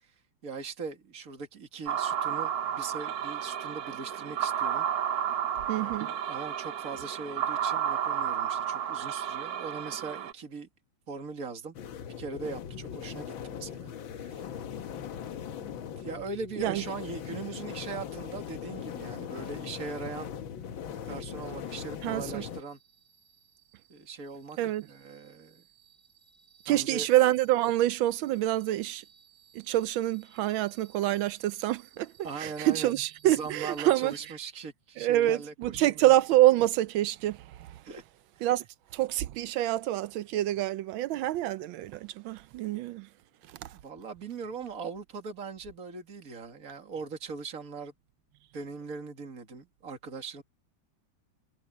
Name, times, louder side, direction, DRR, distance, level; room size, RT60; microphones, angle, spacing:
voice 1, 0.4-4.9 5.7-10.7 11.1-11.8 12.2-14.5 15.6-20.3 21.0-22.8 23.9-25.6 26.7-27.1 32.2-33.0 33.2-36.0 37.8-38.0 38.4-38.5 43.7-47.9 48.5-50.4, right 4 dB, 45° right, 2.6 m, -40 dB
sound 1, 1.9-10.3, right 9 dB, 60° right, 1.1 m, -32 dB
voice 2, 5.7-6.1 16.6-16.8 22.0-22.4 24.6-24.8 26.7-29.0 29.5-32.1 32.4-34.2 35.0-37.7 38.4-38.6 38.9-43.1 43.6-43.7, right 14 dB, 85° right, 1.4 m, -26 dB
sound 2, 11.8-22.6, left 8 dB, 85° left, 1.9 m, -40 dB
sound 3, 22.5-34.3, right 9 dB, 25° left, 5.5 m, -60 dB
omnidirectional pair, 2.1 m